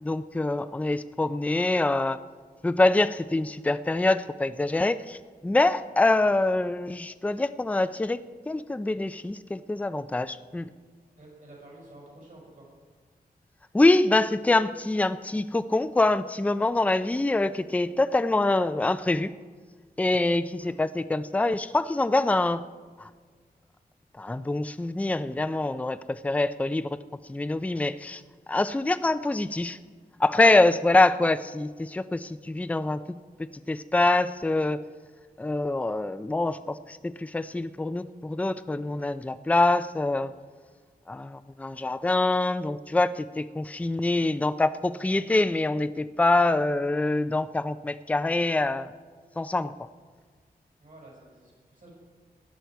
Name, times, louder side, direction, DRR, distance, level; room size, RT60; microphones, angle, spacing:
voice 1, 0.0-2.2 2.6-8.2 8.5-10.7 13.7-19.3 20.0-22.7 23.0-23.1 24.2-27.0 27.3-28.2 28.5-29.8 30.2-34.8 35.4-40.3 41.1-48.9 49.4-49.7, left 2 dB, 10° left, 12 dB, 0.4 m, -25 dB
voice 2, 11.2-12.7 20.5-20.7 50.8-51.9, right 1 dB, 60° right, -3 dB, 5.4 m, -50 dB
17.0 x 11.5 x 4.6 m, 1.5 s
wide cardioid pair, 110°, 16 cm